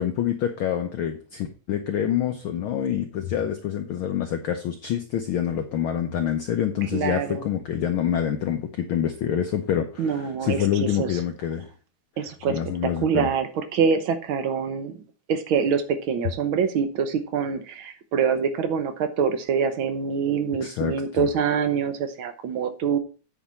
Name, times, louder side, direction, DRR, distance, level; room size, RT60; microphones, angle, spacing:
voice 1, 0.0-11.7 12.5-13.3 20.6-21.3, left 9 dB, 90° left, 6 dB, 1.1 m, -26 dB
voice 2, 6.9-7.4 10.0-11.1 12.2-14.9 15.3-23.0, right 6 dB, 65° right, 9 dB, 1.3 m, -25 dB
9.1 x 4.8 x 5.6 m, 0.36 s
omnidirectional pair, 3.4 m